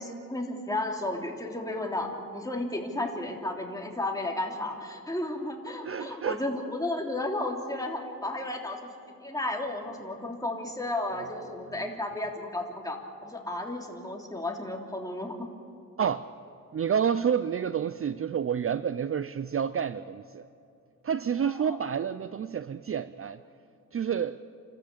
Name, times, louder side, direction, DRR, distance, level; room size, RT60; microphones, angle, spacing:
voice 1, 0.0-8.8 9.2-13.0 13.2-15.5 21.4-21.8, left 1 dB, 10° left, 3.2 m, -33 dB
voice 2, 5.8-6.4 11.8-11.9 16.0-16.3 16.7-20.4 21.0-23.4 23.9-24.4, right 8 dB, 45° right, 0.5 m, -29 dB
28.5 x 13.5 x 8.6 m
wide cardioid pair, 95°, 32 cm